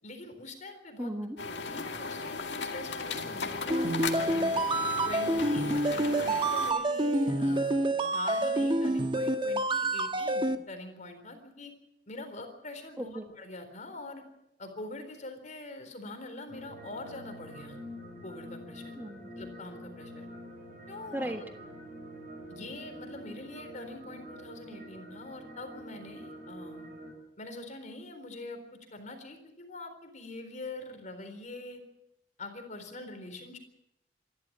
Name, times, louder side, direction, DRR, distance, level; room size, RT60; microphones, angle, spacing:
voice 1, 0.0-1.1 1.5-4.5 5.1-11.7 12.1-14.2 14.6-17.8 18.2-19.0 19.4-20.3 20.9-21.5 22.5-26.9 27.4-31.8 32.4-33.6, left 2 dB, 45° left, 7 dB, 4.0 m, -44 dB
voice 2, 1.0-1.4 13.0-13.2 19.0-19.3 21.1-21.4, right 1 dB, 10° right, 5 dB, 1.4 m, -35 dB
sound 1, 1.4-6.7, left 4 dB, 75° left, 2.3 m, -36 dB
sound 2, 3.7-10.5, right 1 dB, 30° right, 1.4 m, -28 dB
sound 3, 16.5-27.1, equal, 55° right, 7.2 m, -46 dB
26.5 x 12.5 x 8.8 m, 0.85 s
head